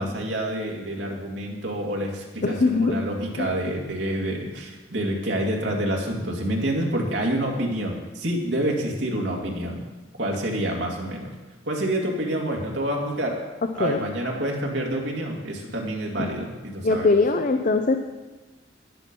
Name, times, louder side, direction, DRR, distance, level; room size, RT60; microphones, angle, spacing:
voice 1, 0.0-9.8 10.2-11.3 11.7-13.4 13.8-17.1, right 1 dB, 70° right, -1 dB, 2.4 m, -27 dB
voice 2, 2.4-3.0 3.4-3.5 13.8-14.0 16.2-16.5 16.8-18.0, left 3 dB, 45° left, 6 dB, 0.6 m, -21 dB
11.0 x 10.0 x 5.4 m, 1.2 s
head